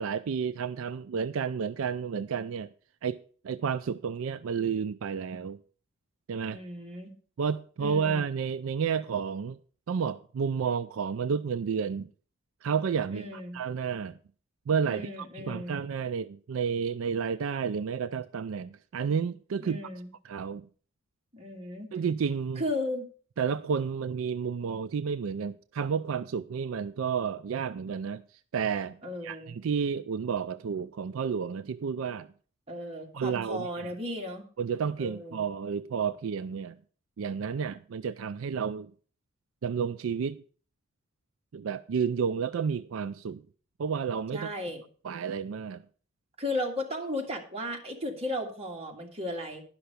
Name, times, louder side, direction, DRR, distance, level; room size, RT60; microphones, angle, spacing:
voice 1, 0.0-2.7 3.0-3.2 3.4-5.6 6.3-6.6 7.4-9.6 9.9-12.1 12.6-13.3 13.5-14.2 14.7-15.1 15.4-19.8 20.3-20.7 21.9-22.6 23.4-28.2 28.5-29.0 29.2-32.3 33.1-33.7 34.6-36.8 37.2-38.9 39.6-40.4 41.5-43.4 43.8-44.5 45.0-45.8, right 6 dB, 75° right, 0.4 m, -31 dB
voice 2, 6.5-7.2 7.8-8.3 13.1-13.6 14.8-15.8 19.6-20.1 21.3-21.9 22.6-23.1 29.0-29.6 32.7-34.4 35.0-35.5 44.3-44.8 46.4-49.6, left 1 dB, 30° right, 2.0 m, -35 dB
11.0 x 5.8 x 6.6 m
head